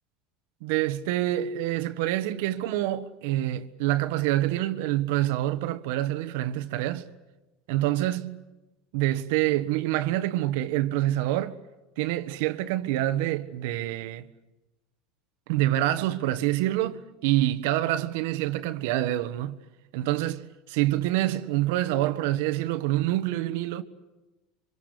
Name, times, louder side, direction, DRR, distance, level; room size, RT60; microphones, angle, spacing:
voice 1, 0.6-7.1 7.7-8.4 8.9-11.6 12.0-14.3 15.5-19.6 19.9-23.8, right 14 dB, 75° right, 1.5 m, -26 dB
27.0 x 25.5 x 8.3 m
supercardioid pair, 120°, 0 cm